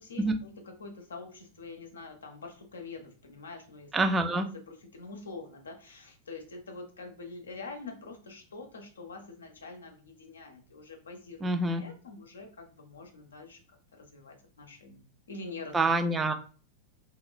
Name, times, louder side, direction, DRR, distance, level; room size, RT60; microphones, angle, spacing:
voice 1, 0.0-3.9 4.2-13.6 13.9-15.8, left 3 dB, 70° left, 4 dB, 0.5 m, -45 dB
voice 2, 3.9-4.5 11.4-11.8 15.7-16.3, right 2 dB, 15° right, 7 dB, 0.3 m, -26 dB
2.9 x 2.1 x 2.3 m, 0.38 s
figure-of-eight pair, 90°, 0 cm